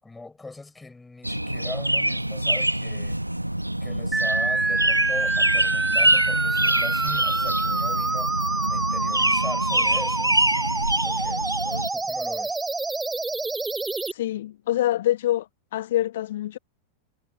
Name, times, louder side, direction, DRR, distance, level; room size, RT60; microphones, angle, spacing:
voice 1, 0.0-3.2 3.8-8.3 8.7-10.4 11.0-12.6, left 3 dB, 10° left, 6.3 m, -40 dB
sound 1, 1.2-11.9, right 1 dB, 85° right, 1.2 m, -25 dB
sound 2, 4.1-14.1, right 3 dB, 10° right, 0.4 m, -26 dB
voice 2, 14.1-16.6, left 13 dB, 55° left, 1.1 m, -26 dB
figure-of-eight pair, 90°, 0 cm